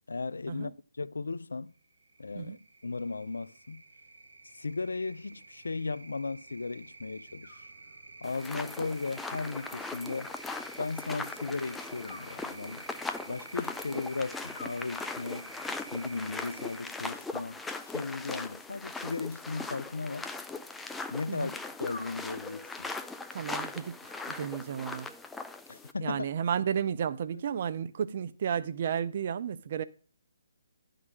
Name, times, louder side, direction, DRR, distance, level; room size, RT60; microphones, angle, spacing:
voice 1, 0.1-0.7 1.0-1.7 2.2-3.8 4.5-7.6 8.2-10.3 10.8-12.9 13.3-15.5 15.9-20.3 21.1-22.9 25.7-26.2, left 3 dB, 80° left, 0.3 m, -36 dB
sound 1, 1.8-16.8, right 3 dB, 75° right, 1.0 m, -50 dB
Animal, 7.4-8.3 9.5-10.6 12.0-13.1 14.5-15.5 17.3-18.2 19.5-20.6 21.8-22.8 24.1-25.0, left 2 dB, 30° left, 2.3 m, -52 dB
sound 2, 8.2-25.9, left 3 dB, 5° left, 0.4 m, -40 dB
voice 2, 23.3-25.1 26.0-29.8, right 8 dB, 50° right, 0.5 m, -33 dB
10.5 x 3.9 x 6.2 m
figure-of-eight pair, 140°, 0 cm